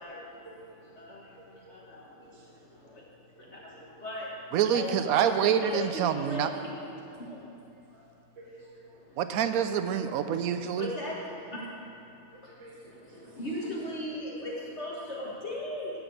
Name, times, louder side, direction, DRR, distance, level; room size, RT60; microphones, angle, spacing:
voice 1, 1.4-1.8 2.2-2.4 3.4-3.5 3.8-3.9 8.4-9.0 12.3-12.9 13.2-13.4, right 2 dB, 45° right, -5 dB, 1.9 m, -52 dB
voice 2, 4.5-6.5 9.2-10.9, right 8 dB, 75° right, 9 dB, 1.0 m, -26 dB
voice 3, 5.1-6.7 10.8-11.2 13.4-15.9, left 1 dB, 50° left, -4 dB, 1.5 m, -36 dB
11.5 x 4.2 x 7.9 m, 2.8 s
omnidirectional pair, 1.6 m